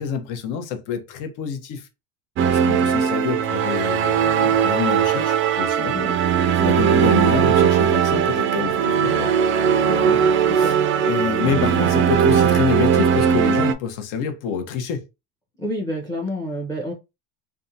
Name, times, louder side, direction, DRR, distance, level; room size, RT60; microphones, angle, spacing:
voice 1, 0.0-1.9 2.5-6.0 6.5-9.3 10.0-10.2 10.5-15.0, left 7 dB, 55° left, 0.8 m, -27 dB
sound 1, 2.4-13.7, right 8 dB, 35° right, 0.4 m, -19 dB
voice 2, 10.5-10.9 15.6-16.9, left 1 dB, 10° left, 0.6 m, -29 dB
2.6 x 2.2 x 2.6 m
supercardioid pair, 110°, 37 cm